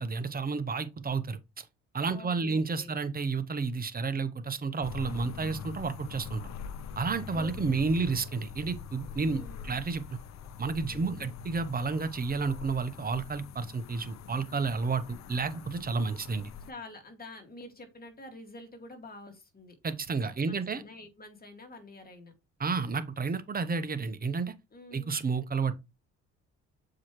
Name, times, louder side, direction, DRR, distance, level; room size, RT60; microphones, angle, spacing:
voice 1, 0.0-1.6 1.9-6.4 7.0-10.2 10.6-16.5 19.8-20.8 22.6-24.5 24.9-25.7, right 4 dB, 30° right, 0.9 m, -31 dB
voice 2, 2.1-2.9 7.3-8.2 9.2-9.8 10.9-11.3 16.7-19.8 20.2-22.3 24.7-25.2, left 2 dB, 30° left, 2.2 m, -48 dB
sound 1, 4.8-16.7, left 7 dB, 65° left, 0.7 m, -44 dB
7.1 x 4.8 x 3.1 m
cardioid pair, 90°, 30 cm